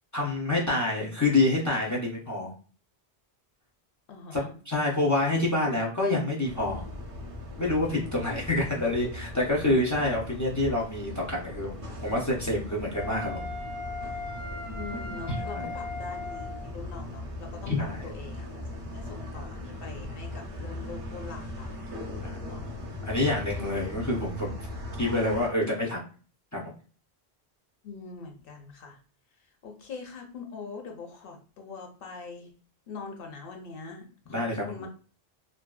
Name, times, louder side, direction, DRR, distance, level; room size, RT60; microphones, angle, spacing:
voice 1, 0.1-2.5 4.3-6.8 7.6-11.7 12.0-13.4 15.3-15.7 17.7-18.1 22.2-22.4 23.0-24.5 25.0-26.0 26.5-26.7 34.3-34.9, left 2 dB, 30° left, -3 dB, 0.3 m, -27 dB
voice 2, 4.1-4.5 14.7-18.6 18.9-21.8 22.4-22.7 23.7-24.0 27.8-29.0 29.6-32.5 32.9-34.9, left 4 dB, 65° left, 3 dB, 0.7 m, -43 dB
sound 1, 6.4-25.5, left 1 dB, 45° right, 0.5 m, -39 dB
Wind instrument woodwind instrument, 12.9-16.7, left 3 dB, 90° left, 1.2 m, -38 dB
2.6 x 2.1 x 2.2 m, 0.39 s
omnidirectional pair, 1.1 m